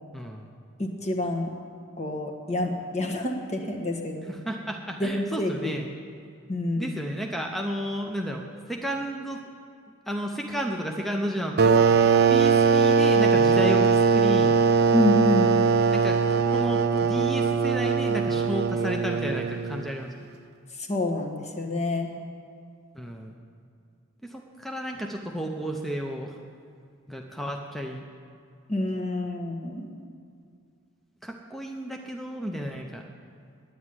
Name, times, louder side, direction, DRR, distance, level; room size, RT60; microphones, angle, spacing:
voice 1, 0.1-0.5 4.3-5.9 6.7-9.4 10.1-11.8 12.3-14.6 15.9-20.1 22.9-23.4 24.2-26.4 27.1-28.1 31.2-33.0, equal, ahead, 2 dB, 0.6 m, -32 dB
voice 2, 0.8-1.5 2.0-4.3 5.0-5.7 6.5-7.0 14.9-15.6 20.8-22.1 28.7-29.9, left 1 dB, 30° left, 2 dB, 1.3 m, -28 dB
sound 1, 11.6-20.0, right 5 dB, 50° right, 0.5 m, -21 dB
10.0 x 9.3 x 9.6 m, 2.3 s
head